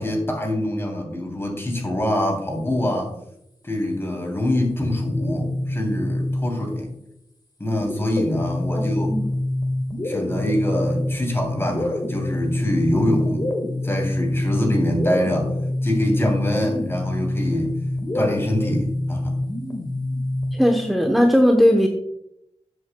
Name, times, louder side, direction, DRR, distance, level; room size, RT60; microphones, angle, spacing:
voice 1, 0.0-3.1 3.6-6.9 7.6-9.2 10.0-13.5 13.8-15.5 15.8-17.8 18.1-19.4, left 1 dB, 20° left, 1 dB, 3.0 m, -24 dB
sound 1, 4.7-6.8 7.8-20.7, left 1 dB, 40° left, 1.7 m, -26 dB
voice 2, 8.7-9.3 20.5-21.9, equal, ahead, 3 dB, 0.9 m, -18 dB
12.5 x 8.0 x 2.3 m, 0.80 s
wide cardioid pair, 75°, 11 cm